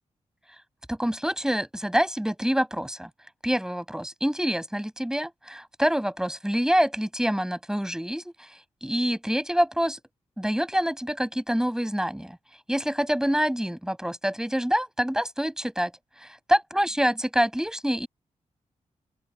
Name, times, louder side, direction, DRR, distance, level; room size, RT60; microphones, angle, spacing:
voice 1, 0.9-3.1 3.4-10.0 10.4-12.4 12.7-15.9 16.2-18.1, equal, 5° right, 7.6 m, -26 dB
open air
cardioid pair, 70°, 12 cm